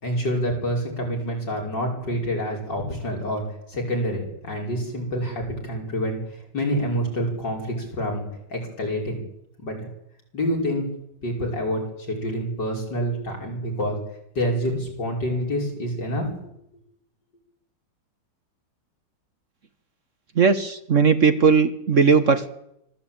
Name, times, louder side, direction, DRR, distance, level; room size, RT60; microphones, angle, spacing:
voice 1, 0.0-3.4 3.7-6.2 6.5-8.2 8.5-9.2 9.6-9.9 10.3-10.9 11.2-11.8 12.1-14.0 14.3-16.3, equal, 70° left, 0 dB, 6.5 m, -27 dB
voice 2, 20.4-22.5, right 5 dB, 45° right, 10 dB, 1.4 m, -18 dB
25.0 x 15.5 x 8.9 m, 0.78 s
omnidirectional pair, 1.9 m